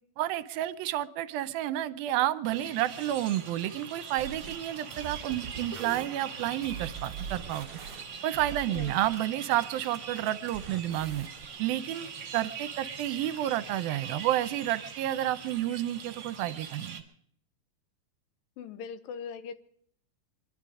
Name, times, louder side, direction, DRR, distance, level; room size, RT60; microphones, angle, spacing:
voice 1, 0.2-7.7 8.2-11.3 11.6-17.0, right 13 dB, 80° right, 14 dB, 2.6 m, -30 dB
sound 1, 2.4-17.0, right 6 dB, 35° right, 2.5 m, -43 dB
sound 2, 4.2-4.6 4.9-9.2 9.5-11.5, right 8 dB, 50° right, 1.9 m, -43 dB
voice 2, 18.6-19.6, left 6 dB, 75° left, 13 dB, 2.6 m, -40 dB
25.5 x 11.5 x 4.8 m, 0.64 s
omnidirectional pair, 4.2 m